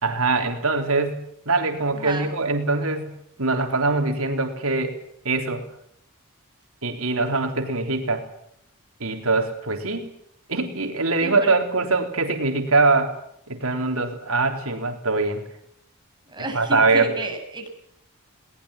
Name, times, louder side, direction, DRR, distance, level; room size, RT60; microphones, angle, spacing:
voice 1, 0.0-5.0 5.2-5.6 6.8-8.3 9.0-10.1 10.5-13.2 13.5-15.5 16.5-17.1, right 3 dB, 75° right, 5 dB, 3.7 m, -23 dB
voice 2, 1.9-2.3 11.2-11.5 16.3-17.7, right 2 dB, 20° right, 3 dB, 6.7 m, -31 dB
22.0 x 19.5 x 8.8 m, 0.71 s
head